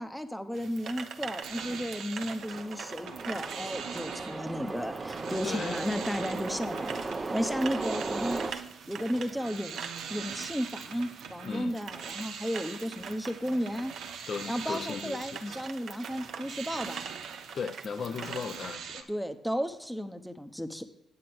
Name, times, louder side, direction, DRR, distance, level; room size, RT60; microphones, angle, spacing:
voice 1, 0.0-6.9 7.3-8.6 8.9-9.8 10.1-13.9 14.5-17.0 19.1-20.8, equal, ahead, 9 dB, 0.9 m, -34 dB
sound 1, 0.5-18.7, right 6 dB, 60° right, 0.9 m, -45 dB
sound 2, 1.4-2.7 3.0-19.0, right 6 dB, 85° right, 1.2 m, -43 dB
sound 3, 2.4-8.5, right 3 dB, 25° right, 0.7 m, -36 dB
voice 2, 5.4-5.8 11.4-11.7 14.3-15.6 17.5-19.1, left 6 dB, 50° left, 8 dB, 0.6 m, -37 dB
9.4 x 7.6 x 6.1 m, 0.89 s
cardioid pair, 90°, 0 cm